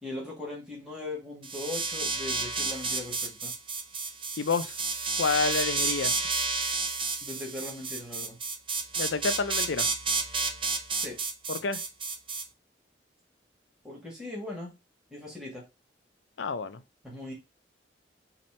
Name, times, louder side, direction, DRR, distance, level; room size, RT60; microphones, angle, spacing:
voice 1, 0.0-3.5 7.2-8.4 10.9-11.2 13.8-14.7 15.1-15.6 17.0-17.3, left 2 dB, 5° right, 1.7 m, -39 dB
sound 1, 1.4-12.4, right 4 dB, 25° right, 0.5 m, -31 dB
voice 2, 4.4-4.7 5.2-6.1 9.0-9.9 11.5-11.8 16.4-16.8, left 4 dB, 75° left, 0.5 m, -29 dB
4.3 x 2.9 x 4.2 m
head